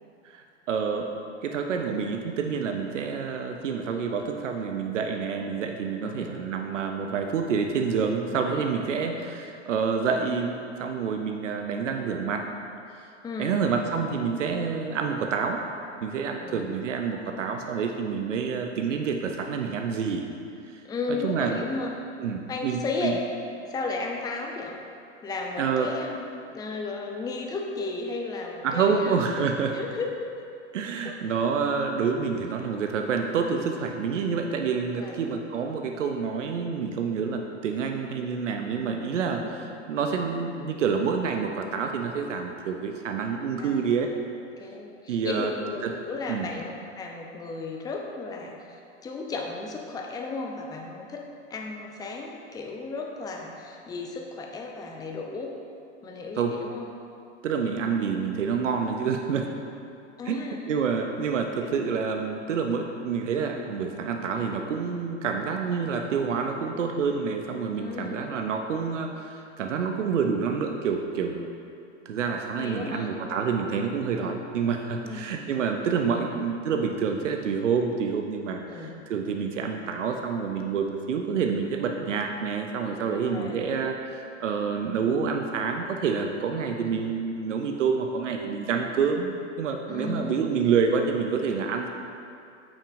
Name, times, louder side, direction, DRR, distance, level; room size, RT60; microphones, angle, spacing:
voice 1, 0.2-1.1 1.4-12.4 13.4-15.6 16.0-20.2 20.7-20.8 21.2-21.6 22.2-23.2 25.6-25.9 28.6-29.8 30.7-44.1 45.1-45.5 45.8-45.9 46.3-46.5 56.4-56.6 57.4-59.5 60.3-60.4 60.7-71.5 72.1-91.9, right 6 dB, 80° right, 4 dB, 0.6 m, -28 dB
voice 2, 8.9-9.2 13.2-13.6 16.4-16.6 20.8-21.9 22.5-23.2 23.7-24.8 25.2-29.2 29.7-30.3 31.0-31.2 35.0-35.2 39.4-39.7 43.6-44.0 44.6-55.5 56.0-56.9 60.2-60.7 61.6-61.9 67.8-68.3 72.6-73.1 75.0-75.4 76.2-76.4 78.7-79.0 83.1-83.6 86.7-87.0 89.9-90.5, left 3 dB, 10° left, 1 dB, 0.6 m, -35 dB
8.3 x 6.2 x 2.6 m, 2.6 s
hypercardioid pair, 105°, 36 cm